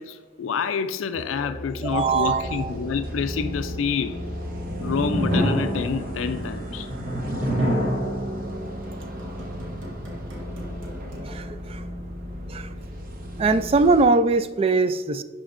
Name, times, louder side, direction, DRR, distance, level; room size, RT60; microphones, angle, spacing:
voice 1, 0.0-4.2 4.8-6.9, left 6 dB, 75° left, 0.4 m, -28 dB
Musical instrument, 1.1-6.3, left 2 dB, 35° left, 1.2 m, -38 dB
voice 2, 1.8-2.7 11.3-11.8 12.5-12.7 13.4-15.2, right 3 dB, 30° right, 0.3 m, -21 dB
sound 1, 1.8-14.1, equal, 45° right, 0.9 m, -36 dB
sound 2, 4.4-11.5, equal, 70° right, 1.6 m, -29 dB
11.0 x 5.0 x 2.5 m
head